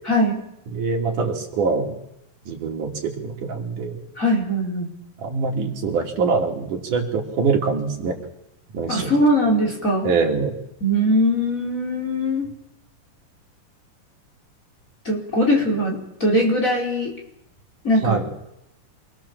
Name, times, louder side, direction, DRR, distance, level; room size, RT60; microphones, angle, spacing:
voice 1, 0.1-0.4 4.2-4.9 8.9-10.1 10.8-12.5 15.1-17.1 17.8-18.2, equal, 25° left, -1 dB, 5.4 m, -21 dB
voice 2, 0.7-2.0 2.5-4.0 5.2-8.2 8.7-9.1 10.0-10.6 18.0-18.3, right 4 dB, 70° right, 1 dB, 4.4 m, -24 dB
28.0 x 21.0 x 7.3 m, 0.82 s
omnidirectional pair, 3.8 m